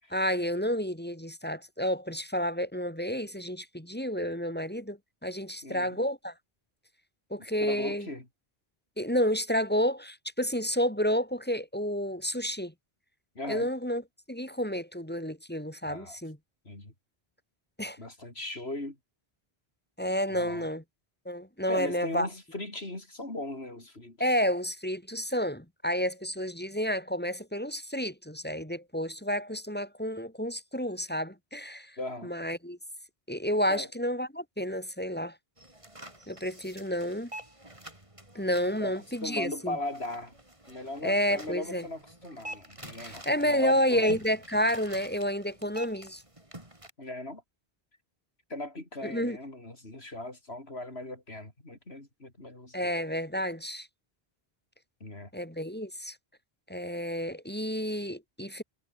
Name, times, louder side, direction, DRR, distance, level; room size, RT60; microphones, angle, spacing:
voice 1, 0.1-6.3 7.3-8.1 9.0-12.7 13.5-14.0 14.3-16.4 17.8-18.0 20.0-20.8 21.3-22.3 24.2-32.8 33.3-35.4 36.3-37.3 38.3-39.8 41.0-41.8 43.0-46.2 49.0-49.4 52.7-53.9 55.3-56.2 56.7-58.6, equal, 10° left, 2.7 m, -30 dB
voice 2, 5.6-6.0 7.6-8.3 13.4-13.7 15.8-16.2 16.7-16.9 18.0-19.0 20.3-20.7 21.7-24.2 32.0-32.3 33.7-33.9 38.7-38.9 39.2-40.3 40.7-44.2 47.0-47.4 48.5-52.9 55.0-55.3, left 2 dB, 80° left, 5.4 m, -38 dB
sound 1, 35.6-46.9, right 1 dB, 30° right, 4.3 m, -47 dB
omnidirectional pair, 1.1 m